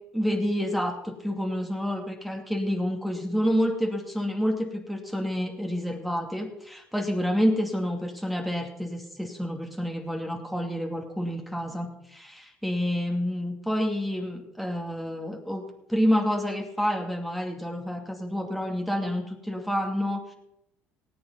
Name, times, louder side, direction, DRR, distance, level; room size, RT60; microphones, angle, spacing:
voice 1, 0.1-20.3, equal, ahead, 2 dB, 2.4 m, -28 dB
18.5 x 8.7 x 4.0 m, 0.78 s
supercardioid pair, 80°, 5 cm